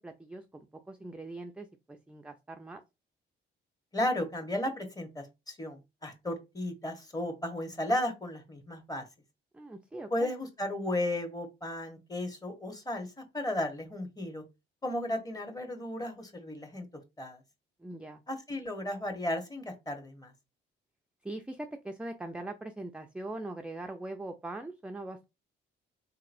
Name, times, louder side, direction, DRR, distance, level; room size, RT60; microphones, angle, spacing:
voice 1, 0.0-2.8 9.5-10.3 17.8-18.2 21.2-25.3, right 2 dB, 5° right, 0.4 m, -41 dB
voice 2, 3.9-9.0 10.1-14.4 14.8-16.8 17.2-17.4 18.3-20.3, left 1 dB, 20° left, 1.1 m, -34 dB
4.0 x 2.8 x 2.6 m
cardioid pair, 90°, 20 cm